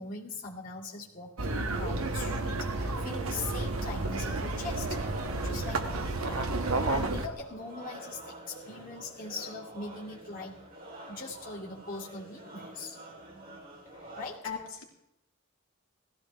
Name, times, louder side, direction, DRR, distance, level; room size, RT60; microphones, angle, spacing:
voice 1, 0.0-5.0 5.4-10.6 11.1-13.6 14.1-14.5, left 3 dB, 40° left, -5 dB, 2.6 m, -41 dB
sound 1, 1.4-7.3, right 2 dB, 85° right, 1.3 m, -31 dB
sound 2, 3.3-14.3, right 1 dB, 40° right, 3.7 m, -47 dB
voice 2, 14.4-14.8, left 6 dB, 70° left, -1 dB, 2.9 m, -39 dB
19.0 x 15.0 x 3.4 m, 0.85 s
head